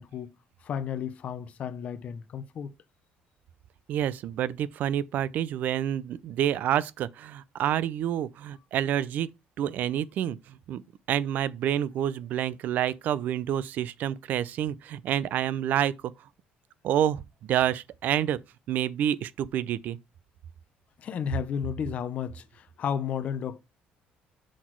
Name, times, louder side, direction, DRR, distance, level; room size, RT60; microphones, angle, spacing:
voice 1, 0.0-2.7 21.0-23.6, left 8 dB, 40° left, 0.5 m, -33 dB
voice 2, 3.9-9.3 9.6-10.8 11.1-16.1 16.8-18.4 18.7-20.0, right 10 dB, 55° right, 0.4 m, -28 dB
6.2 x 4.0 x 4.5 m
cardioid pair, 160°, 3 cm